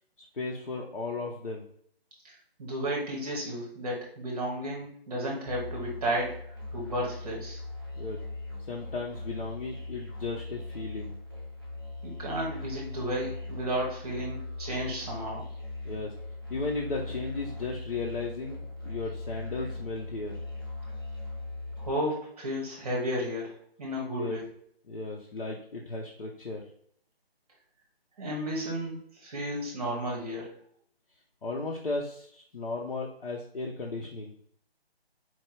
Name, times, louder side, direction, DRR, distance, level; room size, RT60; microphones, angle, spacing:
voice 1, 0.2-1.7 8.0-8.2 8.7-11.1 15.8-16.2 16.5-20.4 24.2-24.4 24.9-26.7 31.4-34.3, left 3 dB, 60° left, -1 dB, 0.8 m, -35 dB
voice 2, 2.2-6.4 6.7-7.6 12.0-15.4 21.8-24.4 28.2-30.5, equal, 10° right, -3 dB, 1.0 m, -33 dB
Musical instrument, 5.4-21.9, left 2 dB, 20° left, 0.7 m, -39 dB
4.5 x 2.4 x 4.5 m, 0.64 s
hypercardioid pair, 175°, 31 cm